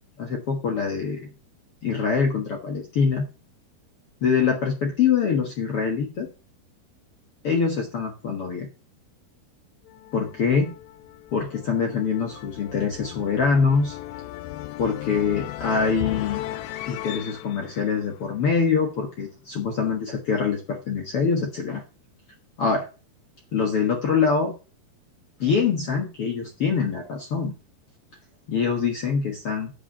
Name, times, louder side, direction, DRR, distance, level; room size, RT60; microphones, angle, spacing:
voice 1, 0.2-1.3 1.8-3.2 4.2-6.3 7.4-8.7 10.1-10.7 11.3-14.0 14.8-16.4 16.9-21.8 22.6-22.9 23.5-24.5 25.4-27.5 28.5-29.7, left 5 dB, 65° left, 2 dB, 1.4 m, -24 dB
sound 1, 9.9-18.9, left 15 dB, 85° left, 2.8 m, -37 dB
8.4 x 5.8 x 7.2 m, 0.33 s
omnidirectional pair, 4.8 m